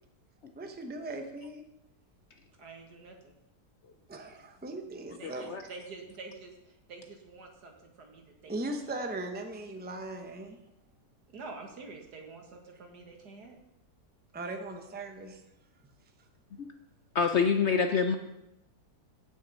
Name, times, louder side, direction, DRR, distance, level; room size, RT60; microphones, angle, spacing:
voice 1, 0.5-1.6 4.1-5.5 8.5-10.6 14.3-15.4, right 2 dB, 10° right, 5 dB, 0.6 m, -38 dB
voice 2, 2.6-3.3 5.2-6.5 6.9-8.5 11.3-13.6, right 3 dB, 80° right, 2 dB, 2.2 m, -47 dB
voice 3, 5.2-5.6 16.6-16.7 17.1-18.1, left 6 dB, 60° left, 7 dB, 0.8 m, -26 dB
15.5 x 6.4 x 4.1 m, 0.88 s
omnidirectional pair, 1.7 m